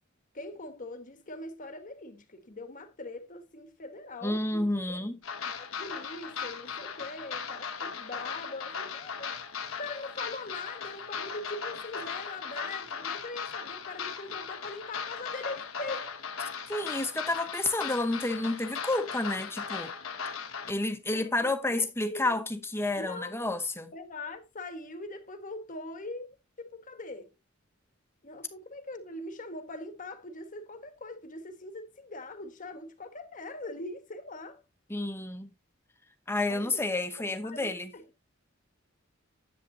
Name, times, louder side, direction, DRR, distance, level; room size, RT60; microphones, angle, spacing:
voice 1, 0.3-5.1 5.4-9.4 9.8-16.1 21.1-21.8 22.1-22.4 23.0-23.3 23.9-26.3 26.6-27.3 28.2-34.6 36.5-36.9 37.2-38.0, left 2 dB, 40° left, 1.3 m, -42 dB
voice 2, 4.2-5.2 16.7-19.9 20.7-23.9 34.9-35.5 36.3-37.9, left 2 dB, 10° left, 1.0 m, -30 dB
sound 1, 5.2-20.7, left 6 dB, 80° left, 1.3 m, -38 dB
10.5 x 8.2 x 2.7 m
head